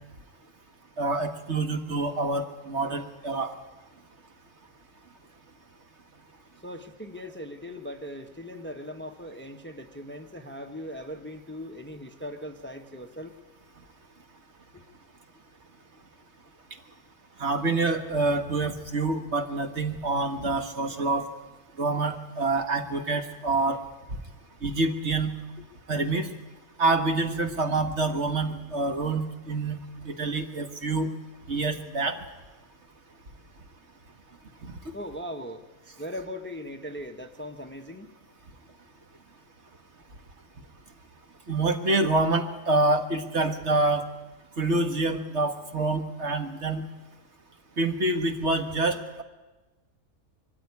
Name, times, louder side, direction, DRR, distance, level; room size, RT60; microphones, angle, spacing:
voice 1, 1.0-3.5 17.4-21.2 21.8-23.8 24.6-25.3 25.9-26.3 26.8-29.8 30.1-31.1 31.5-32.2 34.6-34.7 41.5-44.0 44.6-46.8 47.8-49.2, right 2 dB, 50° right, 5 dB, 1.8 m, -26 dB
voice 2, 6.6-13.4 14.7-14.8 34.9-35.6 36.0-38.1, equal, 10° left, 6 dB, 0.9 m, -39 dB
23.0 x 13.5 x 9.7 m, 1.2 s
omnidirectional pair, 1.5 m